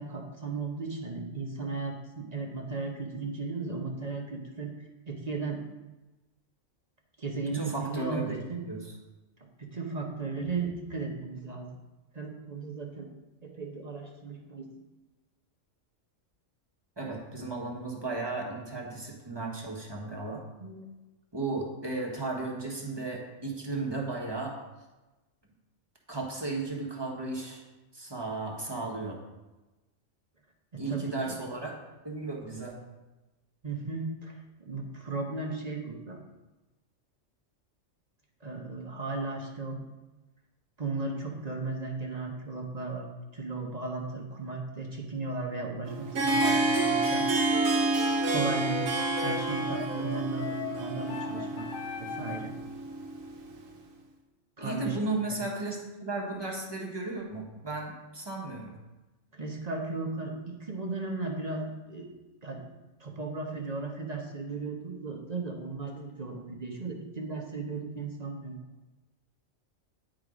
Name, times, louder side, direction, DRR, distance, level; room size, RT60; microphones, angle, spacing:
voice 1, 0.0-4.7 5.1-5.6 7.2-8.6 9.6-11.7 12.1-13.1 13.4-14.7 20.6-20.9 30.7-31.4 33.6-36.2 38.4-39.8 40.8-43.1 43.3-47.7 48.3-48.9 49.2-51.7 52.0-52.5 54.6-55.0 55.3-55.4 59.3-62.1 62.4-62.6 63.0-68.6, right 3 dB, 35° right, 1 dB, 0.9 m, -36 dB
voice 2, 7.4-8.4 8.7-8.8 17.0-20.4 21.3-24.5 26.1-27.6 27.9-29.2 30.8-31.7 32.0-32.7 54.6-58.7, right 3 dB, 20° right, -1 dB, 1.2 m, -35 dB
Harp, 45.9-53.6, right 2 dB, 90° right, 1.3 m, -29 dB
sound 1, 47.5-52.6, left 8 dB, 80° left, 1.0 m, -39 dB
9.4 x 3.9 x 5.0 m, 1.1 s
omnidirectional pair, 1.3 m